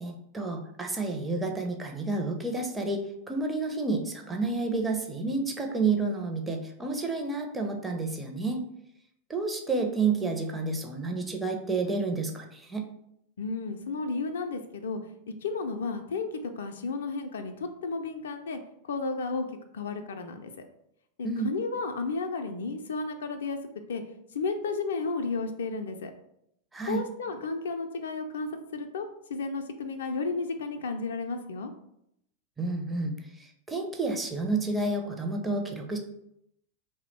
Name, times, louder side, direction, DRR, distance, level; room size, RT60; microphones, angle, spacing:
voice 1, 0.0-8.6 9.3-12.9 21.2-21.5 26.7-27.0 32.6-33.1 33.7-36.0, right 3 dB, 10° right, 2 dB, 0.5 m, -30 dB
voice 2, 13.4-15.0 15.4-18.6 18.9-20.5 21.2-23.6 23.9-24.0 24.3-26.1 26.9-31.7, left 4 dB, 65° left, 7 dB, 0.3 m, -33 dB
2.8 x 2.0 x 3.9 m, 0.77 s
figure-of-eight pair, 90°, 0 cm